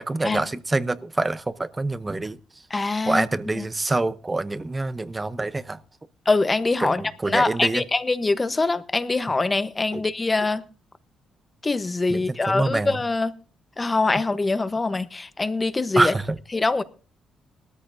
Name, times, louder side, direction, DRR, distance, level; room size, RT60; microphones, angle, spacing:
voice 1, 0.0-2.4 3.1-5.8 6.8-7.8 9.9-10.0 12.1-13.0 16.0-16.4, right 2 dB, 20° right, 0.7 m, -26 dB
voice 2, 2.7-3.2 6.3-7.0 7.3-10.6 11.6-13.3 13.8-16.1 16.5-16.8, left 3 dB, 25° left, 0.9 m, -23 dB
19.5 x 13.5 x 2.6 m
cardioid pair, 90°, 0 cm